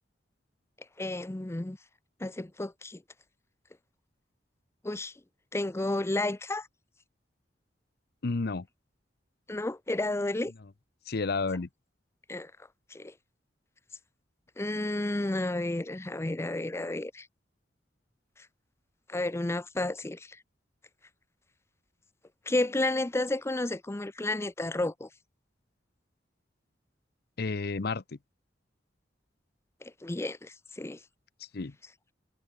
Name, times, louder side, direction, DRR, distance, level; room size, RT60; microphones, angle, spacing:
voice 1, 1.0-1.8 2.2-3.0 4.8-5.1 5.5-6.7 9.5-10.5 12.3-12.5 12.9-13.1 14.6-17.3 19.1-20.4 22.5-25.1 29.8-31.0, left 2 dB, 15° left, 0.5 m, -31 dB
voice 2, 8.2-8.7 11.1-11.7 27.4-28.2 31.5-31.7, left 3 dB, 60° left, 0.7 m, -31 dB
head